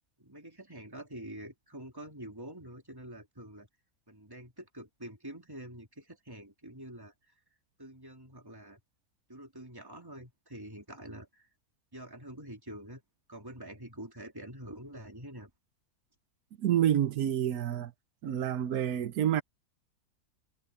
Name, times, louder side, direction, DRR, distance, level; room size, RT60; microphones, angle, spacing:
voice 1, 0.2-3.7 4.1-7.1 7.8-8.8 9.3-11.5 11.9-13.0 13.3-15.5, right 1 dB, 15° right, 3.5 m, -46 dB
voice 2, 16.6-17.9 18.2-19.4, right 10 dB, 75° right, 1.3 m, -28 dB
omnidirectional pair, 1.6 m